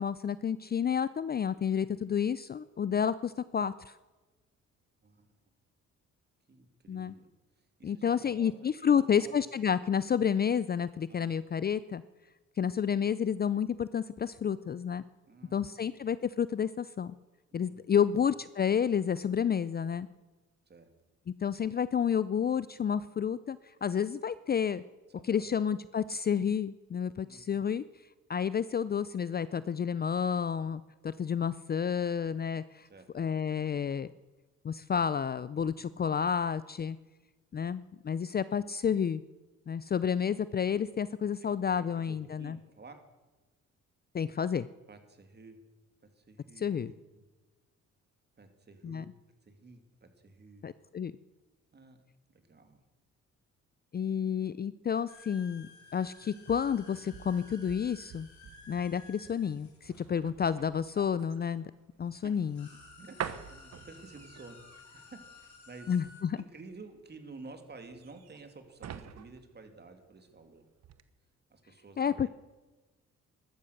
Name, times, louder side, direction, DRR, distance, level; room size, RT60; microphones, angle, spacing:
voice 1, 0.0-4.0 6.9-7.1 7.8-12.0 12.6-15.0 15.5-17.1 17.5-20.1 21.4-24.8 25.3-27.8 28.3-32.9 33.1-34.1 34.6-37.0 37.5-39.2 39.7-42.6 44.1-44.7 46.6-46.9 48.8-49.0 50.6-51.1 53.9-58.3 58.7-61.7 62.0-62.7 65.9-66.4 72.0-72.3, left 7 dB, 30° left, 17 dB, 0.5 m, -30 dB
voice 2, 6.5-7.3 7.6-8.5 8.8-9.3 11.1-11.3 15.3-16.0 17.5-18.3 20.7-20.9 25.1-25.5 27.2-27.6 32.8-33.1 41.8-43.0 44.9-45.6 46.1-47.2 48.4-49.0 49.4-50.7 51.7-52.0 52.3-52.8 62.2-62.3 63.0-63.2 63.5-65.9 66.4-70.7 71.5-72.3, right 3 dB, 35° right, 7 dB, 2.7 m, -52 dB
sound 1, 55.1-60.8 61.6-61.7 62.0-66.2, left 4 dB, 70° left, 4.7 m, -55 dB
sound 2, 56.1-70.5 70.8-71.0, right 9 dB, 60° right, 1.1 m, -47 dB
14.5 x 12.5 x 6.6 m, 1.2 s
cardioid pair, 90°, 30 cm